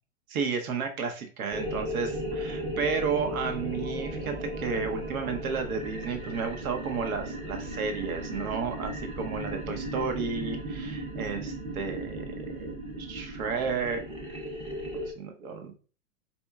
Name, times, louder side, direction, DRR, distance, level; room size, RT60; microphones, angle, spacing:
voice 1, 0.3-14.0 14.9-15.7, right 5 dB, 85° right, 5 dB, 0.9 m, -32 dB
sound 1, 1.5-15.1, right 1 dB, 15° right, 0.6 m, -36 dB
4.3 x 4.3 x 2.3 m, 0.38 s
hypercardioid pair, 135°, 42 cm